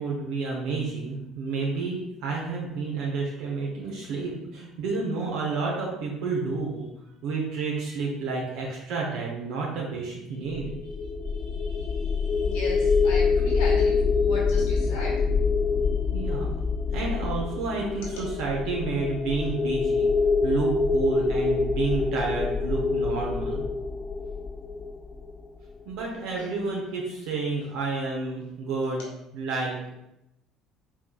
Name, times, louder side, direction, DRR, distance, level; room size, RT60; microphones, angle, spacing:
voice 1, 0.0-6.8 7.2-10.7 16.1-16.5 16.9-20.1 20.4-23.6 25.9-29.0 29.3-29.7, right 4 dB, 60° right, -3 dB, 0.7 m, -30 dB
sound 1, 10.5-25.6, left 4 dB, 30° left, 0.4 m, -25 dB
voice 2, 11.2-15.3 18.0-18.1 26.4-26.5, left 2 dB, 65° left, -3 dB, 1.3 m, -38 dB
4.5 x 3.4 x 2.4 m, 0.87 s
figure-of-eight pair, 55°, 0 cm